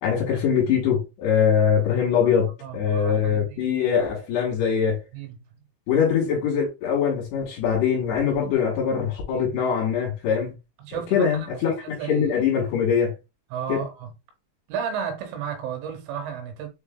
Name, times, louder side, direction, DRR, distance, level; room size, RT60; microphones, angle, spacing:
voice 1, 0.0-5.0 5.9-10.5 11.1-13.2 13.7-13.8, left 7 dB, 65° left, 3.0 m, -23 dB
voice 2, 2.6-3.6 5.1-5.3 9.3-9.5 10.8-12.3 13.5-14.1 14.7-16.7, right 7 dB, 85° right, 3.5 m, -33 dB
7.0 x 3.2 x 2.2 m
omnidirectional pair, 5.6 m